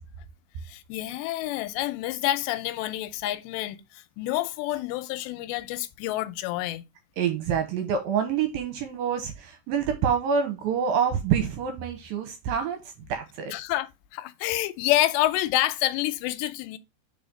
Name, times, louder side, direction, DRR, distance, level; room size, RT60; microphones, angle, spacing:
voice 1, 0.7-6.8 13.5-16.8, left 15 dB, 85° left, 2.8 m, -28 dB
voice 2, 7.2-13.5, right 7 dB, 75° right, 2.2 m, -27 dB
5.0 x 4.8 x 5.2 m
omnidirectional pair, 4.9 m